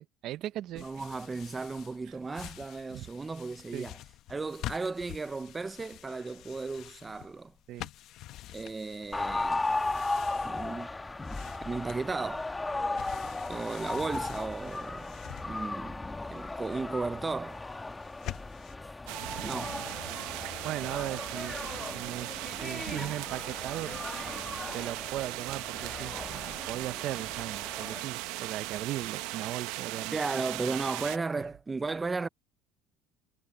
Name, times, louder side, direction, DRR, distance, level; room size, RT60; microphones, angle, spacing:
voice 1, 0.0-0.8 2.9-3.1 3.7-3.9 7.7-7.9 20.6-24.0 24.7-30.2, right 14 dB, 50° right, 0.7 m, -38 dB
sound 1, 0.8-18.8, left 14 dB, 55° left, 1.0 m, -47 dB
voice 2, 0.8-4.0 4.3-7.5 8.5-9.6 10.5-10.9 11.6-12.5 13.2-17.6 19.4-19.9 30.1-32.3, right 3 dB, 15° right, 0.5 m, -35 dB
sound 2, 9.1-28.0, left 2 dB, 10° left, 1.3 m, -37 dB
sound 3, 19.1-31.2, right 19 dB, 75° right, 1.0 m, -38 dB
cardioid pair, 135°, 0 cm